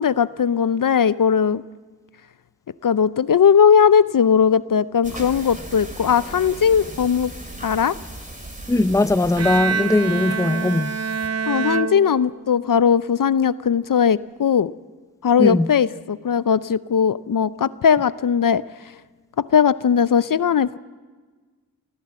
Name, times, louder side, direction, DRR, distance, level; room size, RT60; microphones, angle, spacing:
voice 1, 0.0-1.6 2.8-7.3 7.6-7.9 11.5-14.7 15.2-18.6 19.4-20.8, left 7 dB, 65° left, 0.5 m, -18 dB
sound 1, 5.0-11.3, right 1 dB, 20° right, 3.3 m, -38 dB
voice 2, 8.7-11.0 15.4-15.7, left 2 dB, 10° left, 0.5 m, -19 dB
Bowed string instrument, 9.4-12.7, right 5 dB, 45° right, 0.6 m, -26 dB
24.5 x 15.5 x 7.5 m
wide cardioid pair, 60°, 36 cm